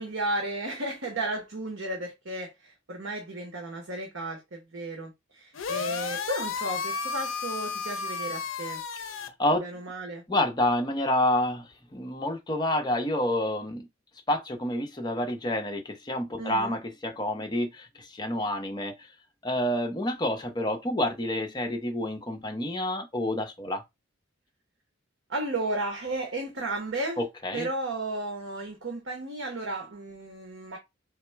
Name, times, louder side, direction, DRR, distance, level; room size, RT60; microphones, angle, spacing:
voice 1, 0.0-8.8 9.6-10.2 16.4-16.8 25.3-27.2 27.5-30.8, right 2 dB, 70° right, 1.0 m, -34 dB
sound 1, 5.5-9.3, left 5 dB, 75° left, 0.5 m, -33 dB
voice 2, 9.1-9.6 10.3-13.9 14.3-18.9 19.4-23.8 27.2-27.7, left 1 dB, 20° left, 0.7 m, -28 dB
3.8 x 2.1 x 4.4 m
head